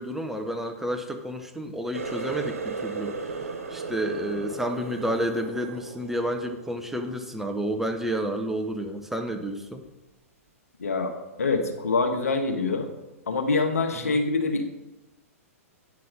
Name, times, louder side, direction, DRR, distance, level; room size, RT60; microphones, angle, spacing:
voice 1, 0.0-3.3 3.7-9.9 14.0-14.2, equal, 5° right, 5 dB, 0.8 m, -30 dB
Water tap faucet, 1.9-7.4 7.8-8.3 8.7-9.0 9.8-9.9, right 4 dB, 70° right, 1.5 m, -36 dB
voice 2, 10.8-11.1 11.4-12.9 13.3-14.6, left 3 dB, 75° left, 5 dB, 1.4 m, -25 dB
9.5 x 5.6 x 5.3 m, 1.0 s
figure-of-eight pair, 110°, 8 cm